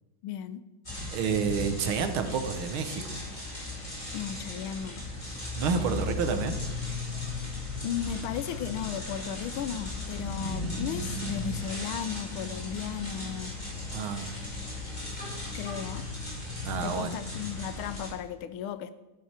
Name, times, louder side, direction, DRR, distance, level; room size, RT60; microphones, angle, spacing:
voice 1, 0.2-0.6 4.1-5.0 7.8-13.5 15.5-16.0 16.8-18.9, left 9 dB, 85° left, 13 dB, 1.5 m, -35 dB
sound 1, 0.8-18.1, left 2 dB, 20° left, 3.0 m, -36 dB
voice 2, 1.1-3.2 5.6-6.6 13.9-14.3 16.6-17.1, right 5 dB, 85° right, 8 dB, 1.9 m, -29 dB
12.5 x 8.8 x 4.4 m, 1.0 s
omnidirectional pair, 2.2 m